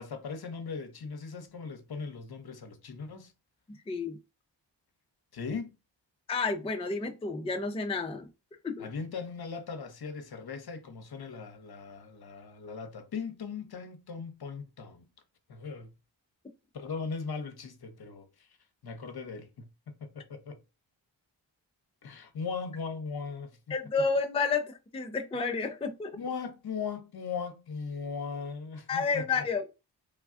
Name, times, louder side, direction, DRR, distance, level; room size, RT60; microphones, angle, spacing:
voice 1, 0.0-3.3 5.3-5.7 8.8-15.0 15.5-15.9 16.7-18.5 18.8-19.7 20.0-20.6 22.0-23.6 26.1-29.4, left 5 dB, 55° left, 0.8 m, -38 dB
voice 2, 3.9-4.2 6.3-8.3 8.6-8.9 23.7-26.1 28.9-29.7, left 4 dB, 15° left, 0.4 m, -30 dB
3.3 x 2.2 x 2.5 m
cardioid pair, 45°, 46 cm